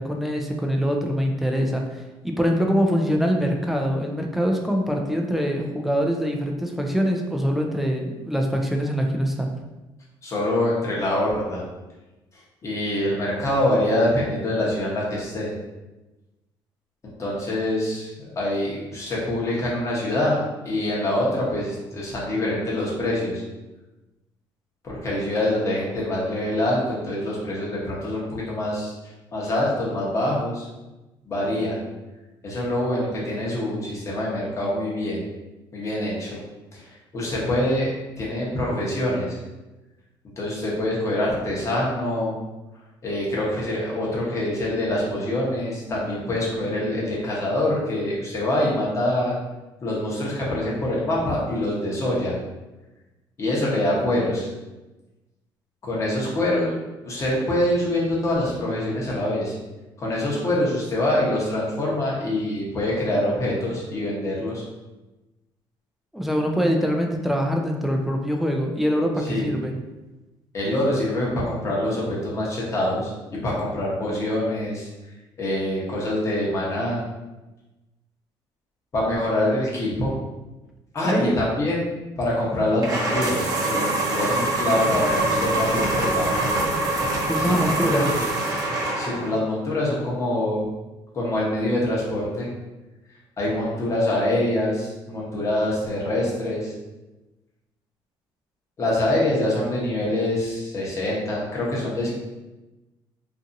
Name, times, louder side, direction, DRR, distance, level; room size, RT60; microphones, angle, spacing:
voice 1, 0.0-9.5 66.1-69.7 81.0-81.4 87.2-88.1, equal, ahead, 1 dB, 0.3 m, -24 dB
voice 2, 10.2-11.6 12.6-15.5 17.0-23.4 24.8-28.9 29.3-30.7 31.2-31.8 32.4-35.2 35.7-36.4 36.7-37.9 38.2-39.4 40.4-42.3 43.0-49.4 49.8-52.3 53.4-54.5 55.8-56.8 57.0-59.5 60.0-64.6 69.2-69.5 70.5-74.9 75.4-77.0 78.9-80.1 80.9-81.9 82.2-86.5 87.4-88.3 88.9-90.6 91.1-92.5 93.4-96.7 98.8-102.1, left 1 dB, 30° left, -5 dB, 0.9 m, -25 dB
sound 1, 82.8-89.4, right 2 dB, 40° right, 0.7 m, -24 dB
2.6 x 2.5 x 2.6 m, 1.1 s
cardioid pair, 125°, 9 cm